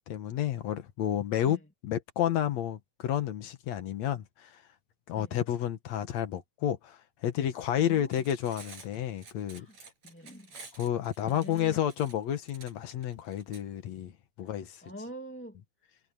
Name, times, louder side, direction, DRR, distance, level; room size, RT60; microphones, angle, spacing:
voice 1, 0.1-1.6 1.8-4.6 5.1-9.7 10.8-14.8, left 10 dB, 70° left, 2.5 m, -31 dB
voice 2, 7.8-8.2 9.5-9.8 10.0-10.7 11.2-11.9 14.4-14.5 14.8-15.6, equal, 5° left, 1.9 m, -46 dB
Cutlery silverware, 8.0-13.6, right 4 dB, 70° right, 7.2 m, -50 dB
omnidirectional pair, 3.3 m